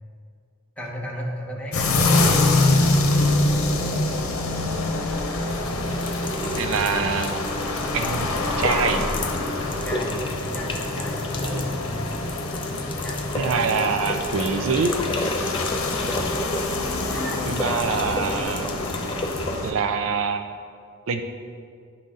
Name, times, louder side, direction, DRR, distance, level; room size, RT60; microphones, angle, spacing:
voice 1, 0.8-1.9 9.8-11.6 12.7-13.3 13.6-13.8 14.2-14.8 15.9-16.3 16.7-17.4, equal, 5° left, -3 dB, 1.0 m, -36 dB
sound 1, 1.7-19.7, left 2 dB, 85° left, 0.8 m, -25 dB
voice 2, 4.6-5.2 6.4-7.4 7.9-8.3 8.6-9.0 11.4-11.6 13.3-14.9 17.5-18.8 19.6-20.4 21.1-21.2, right 5 dB, 70° right, 7 dB, 0.4 m, -25 dB
sound 2, 5.5-19.6, left 1 dB, 25° left, 0.5 m, -31 dB
10.5 x 4.0 x 3.8 m, 2.2 s
head